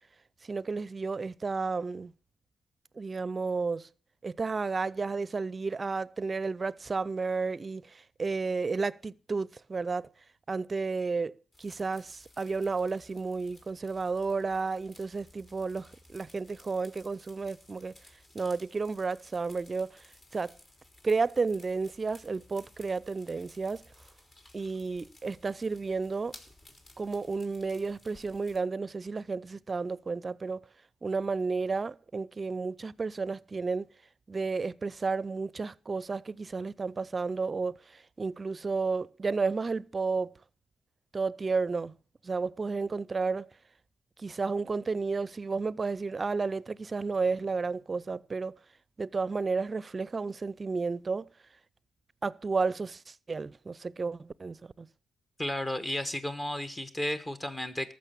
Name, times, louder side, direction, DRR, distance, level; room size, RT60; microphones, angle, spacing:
voice 1, 0.5-2.1 3.0-3.9 4.2-10.1 10.5-17.9 18.3-20.0 20.3-20.5 21.0-23.8 24.5-26.4 27.0-30.6 31.0-33.9 34.3-40.3 41.1-41.9 42.2-43.5 44.2-48.6 49.0-51.3 52.2-54.9, right 4 dB, 40° right, 0.5 m, -32 dB
sound 1, 11.5-28.6, left 1 dB, 40° left, 3.2 m, -57 dB
voice 2, 55.4-57.9, left 1 dB, 25° left, 1.1 m, -33 dB
14.0 x 6.4 x 7.0 m
supercardioid pair, 50°, 0 cm